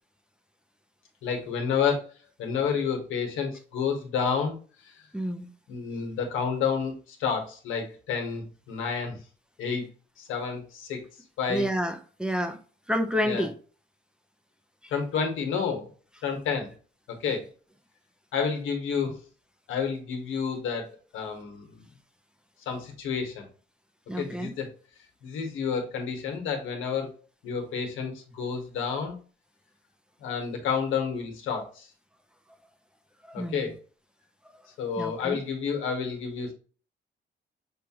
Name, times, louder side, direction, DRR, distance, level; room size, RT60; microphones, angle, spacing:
voice 1, 1.2-2.1 2.4-4.5 5.7-9.2 9.6-9.8 10.2-11.0 11.4-11.7 13.2-13.5 14.9-15.9 16.2-16.7 17.2-17.4 18.3-19.2 19.7-21.8 22.7-23.4 24.2-24.7 25.2-27.1 27.4-29.1 30.2-31.9 33.3-33.7 34.8-36.5, left 6 dB, 85° left, 1.3 m, -30 dB
voice 2, 5.1-5.5 11.5-12.6 12.9-13.5 17.3-17.4 24.1-24.5 33.3-33.7 35.0-35.4, equal, 5° right, 0.6 m, -29 dB
6.2 x 2.4 x 2.8 m
cardioid pair, 90°, 20 cm